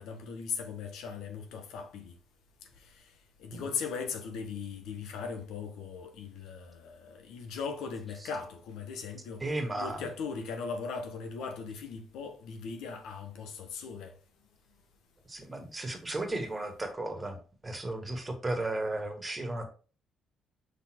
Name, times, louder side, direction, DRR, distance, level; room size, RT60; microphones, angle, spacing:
voice 1, 0.0-2.1 2.8-3.1 3.4-14.2, left 5 dB, 85° left, 1.2 m, -39 dB
voice 2, 9.4-10.0 15.3-19.7, right 2 dB, 20° right, 1.6 m, -35 dB
5.4 x 4.0 x 4.5 m
cardioid pair, 90°, 0 cm